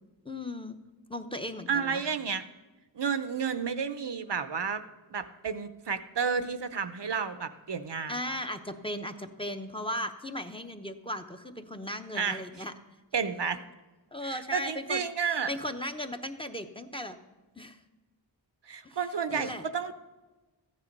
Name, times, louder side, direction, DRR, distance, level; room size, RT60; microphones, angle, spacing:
voice 1, 0.2-0.8 1.1-2.0 8.1-12.7 14.1-15.1 15.5-17.2 17.6-17.8 18.8-19.0 19.3-19.6, left 1 dB, 10° left, 8 dB, 0.9 m, -36 dB
voice 2, 1.7-2.4 2.9-4.8 5.1-8.1 12.1-12.4 13.1-13.6 14.2-15.5 18.7-19.9, right 6 dB, 70° right, 11 dB, 0.7 m, -31 dB
14.0 x 9.8 x 5.3 m, 1.2 s
wide cardioid pair, 45°, 43 cm